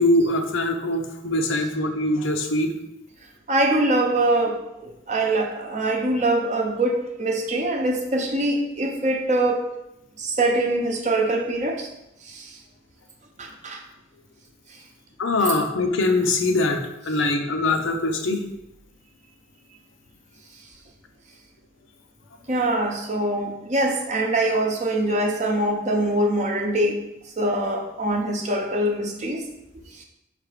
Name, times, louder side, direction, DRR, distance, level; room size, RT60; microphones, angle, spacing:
voice 1, 0.0-2.7 15.2-18.4, left 2 dB, 80° left, 4 dB, 0.7 m, -22 dB
voice 2, 3.5-9.7 10.2-11.9 13.4-13.8 15.4-15.5 22.5-27.0 27.4-29.4, right 1 dB, 35° right, 2 dB, 0.7 m, -23 dB
5.6 x 3.4 x 4.9 m, 0.88 s
head